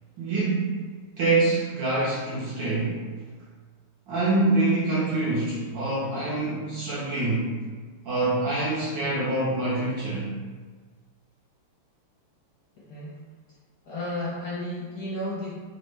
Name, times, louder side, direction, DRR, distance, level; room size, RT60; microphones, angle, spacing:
voice 1, 0.2-0.8 1.2-3.0 4.1-7.5 8.0-10.4, right 2 dB, 65° right, -8 dB, 1.3 m, -25 dB
voice 2, 12.7-13.2 13.8-15.5, left 1 dB, 80° left, -8 dB, 0.8 m, -33 dB
3.9 x 2.1 x 3.1 m, 1.5 s
omnidirectional pair, 2.4 m